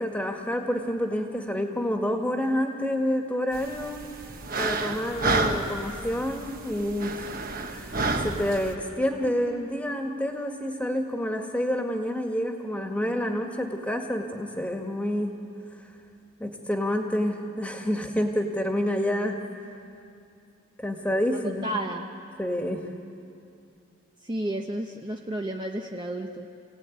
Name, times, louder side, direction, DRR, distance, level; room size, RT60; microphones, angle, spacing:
voice 1, 0.0-4.0 4.6-7.3 7.7-15.4 16.4-19.4 20.8-21.7 22.4-22.9, equal, 5° left, 3 dB, 1.8 m, -28 dB
sound 1, 3.5-8.7, right 3 dB, 45° right, 1.4 m, -30 dB
voice 2, 21.6-22.0 24.2-26.5, right 1 dB, 20° right, 1 dB, 0.9 m, -32 dB
28.5 x 17.5 x 9.3 m, 2.6 s
head